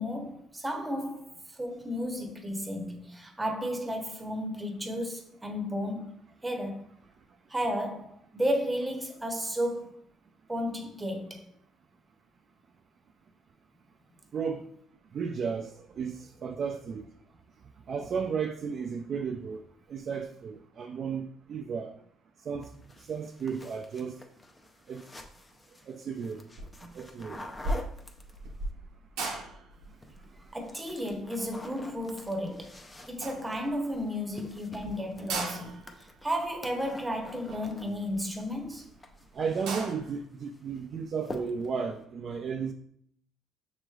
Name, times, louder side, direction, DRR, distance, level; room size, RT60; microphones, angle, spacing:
voice 1, 0.0-6.2 6.4-6.8 7.5-10.0 10.5-11.4 30.5-32.8 33.1-38.9, equal, 15° right, 0.9 m, -33 dB
voice 2, 14.3-14.7 15.1-17.1 17.9-19.6 19.9-22.0 22.4-22.7 23.1-24.2 24.9-25.0 25.9-26.4 26.8-27.5 39.3-42.7, right 6 dB, 50° right, 0.3 m, -34 dB
sound 1, 22.6-28.7 29.8-30.2 30.5-38.4 38.7-40.2 40.5-40.8 41.2-41.8, left 2 dB, 20° left, 0.6 m, -47 dB
sound 2, 26.5-26.9 27.2-32.7 33.2-34.0 34.4-34.5 34.7-34.8 35.1-38.7 39.1-39.2 39.4-40.2, right 2 dB, 85° right, 0.8 m, -38 dB
6.1 x 3.1 x 2.3 m
supercardioid pair, 80°, 0 cm